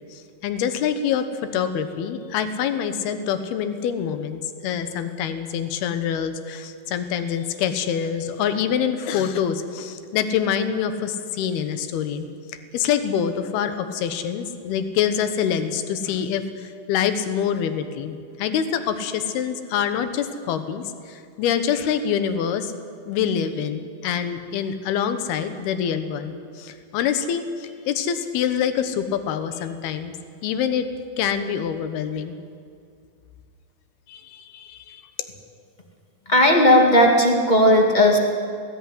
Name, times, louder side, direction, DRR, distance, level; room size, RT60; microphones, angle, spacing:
voice 1, 0.1-12.3 12.7-22.7 23.1-30.1 30.4-30.9 31.2-32.4 34.1-35.0, left 8 dB, 80° left, 10 dB, 3.1 m, -25 dB
voice 2, 36.3-38.2, left 1 dB, 35° left, 2 dB, 0.7 m, -15 dB
20.0 x 14.5 x 9.8 m, 2.2 s
omnidirectional pair, 4.4 m